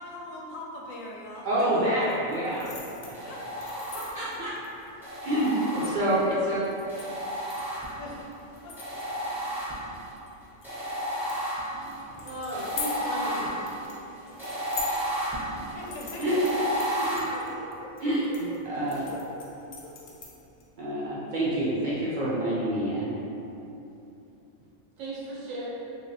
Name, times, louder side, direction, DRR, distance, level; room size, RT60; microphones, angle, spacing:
voice 1, 0.0-2.9 3.2-4.3 8.0-8.3 8.6-9.4 12.5-12.6 15.7-16.4 17.3-19.5 19.8-20.1, left 1 dB, 80° left, -2 dB, 1.0 m, -43 dB
voice 2, 1.4-3.2 3.6-3.7 3.9-4.5 5.2-6.6 16.2-16.3 17.1-17.3 18.0-18.2 18.6-19.1 20.8-23.1, right 1 dB, 60° right, -8 dB, 0.5 m, -27 dB
sound 1, 2.0-20.6, left 4 dB, 60° left, 0.5 m, -45 dB
sound 2, 3.1-4.4 5.0-6.3 6.9-8.2 8.8-10.1 10.6-17.2, equal, 5° right, 0.4 m, -33 dB
voice 3, 12.2-13.5 25.0-25.7, right 1 dB, 85° right, -8 dB, 1.3 m, -35 dB
3.2 x 2.9 x 2.6 m, 2.9 s
omnidirectional pair, 1.4 m